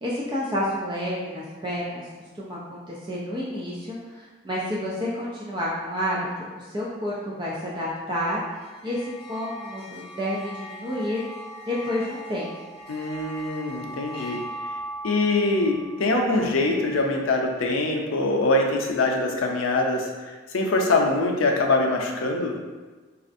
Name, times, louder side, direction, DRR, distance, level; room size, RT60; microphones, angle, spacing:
voice 1, 0.0-2.1 2.3-8.4 8.8-11.2 11.7-12.5, left 1 dB, 25° right, -6 dB, 0.4 m, -30 dB
sound 1, 8.6-17.2, right 1 dB, 25° left, 0.7 m, -40 dB
voice 2, 12.9-14.4 15.0-22.5, left 2 dB, 85° left, 1 dB, 0.5 m, -23 dB
4.1 x 2.4 x 2.5 m, 1.3 s
head